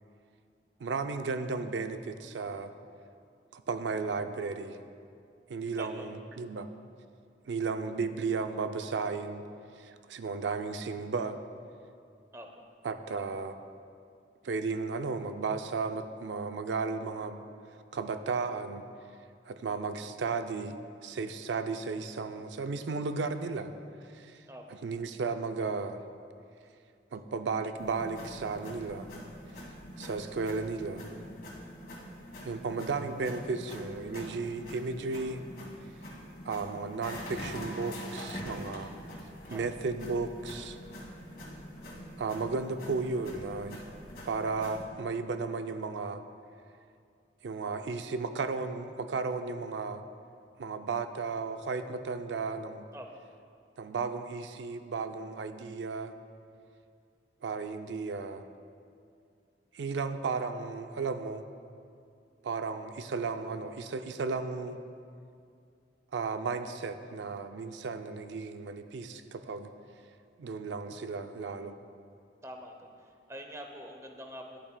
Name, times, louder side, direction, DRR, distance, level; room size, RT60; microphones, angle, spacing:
voice 1, 0.8-2.7 3.5-4.8 5.5-6.7 7.5-9.5 9.8-11.4 12.8-13.6 14.4-17.4 17.9-18.8 19.5-20.8 21.0-23.7 24.0-24.4 24.8-26.0 27.1-29.1 30.0-31.0 32.4-35.4 36.4-38.9 39.5-40.8 42.2-43.8 44.3-46.2 47.4-50.0 50.6-52.8 53.8-56.1 57.4-58.5 59.7-61.4 62.4-64.8 66.1-69.7 70.4-71.8, right 4 dB, 85° right, 9 dB, 0.4 m, -34 dB
sound 1, 27.8-44.8, equal, 55° left, 1.7 m, -44 dB
voice 2, 72.4-74.6, equal, 15° right, 3 dB, 0.6 m, -45 dB
11.5 x 8.6 x 2.2 m, 2.4 s
head